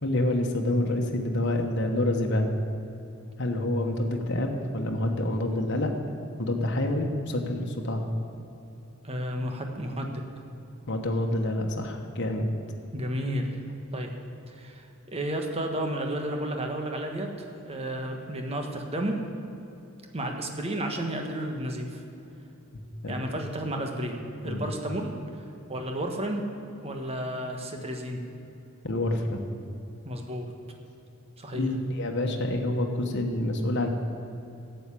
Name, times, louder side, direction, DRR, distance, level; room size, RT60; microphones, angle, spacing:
voice 1, 0.0-2.5 3.4-5.9 6.4-8.0 10.9-12.5 23.0-23.2 24.4-24.6 28.8-29.4 31.5-33.9, left 1 dB, 55° left, 2 dB, 1.3 m, -27 dB
voice 2, 9.0-10.2 12.9-13.5 13.9-14.1 14.5-19.2 20.1-22.0 23.1-25.4 25.7-26.4 26.8-28.2 30.0-30.5 31.4-31.7, right 1 dB, 30° right, 3 dB, 1.4 m, -32 dB
12.0 x 8.1 x 8.5 m, 2.8 s
head